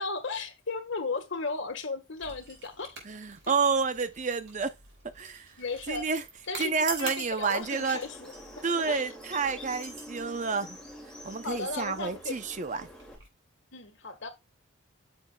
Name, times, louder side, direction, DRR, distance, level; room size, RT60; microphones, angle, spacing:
voice 1, 0.0-3.0 5.6-6.1 6.5-6.7 7.0-9.1 11.4-12.4 13.7-14.3, left 3 dB, 55° left, 1.6 m, -35 dB
sound 1, 2.2-13.3, right 3 dB, 60° right, 4.7 m, -46 dB
voice 2, 3.1-4.7 5.1-5.5 5.9-6.2 6.6-8.0 8.6-10.8 11.2-12.9, right 5 dB, 35° right, 0.6 m, -29 dB
sound 2, 7.6-13.2, equal, 5° left, 2.3 m, -46 dB
9.8 x 6.7 x 2.3 m
head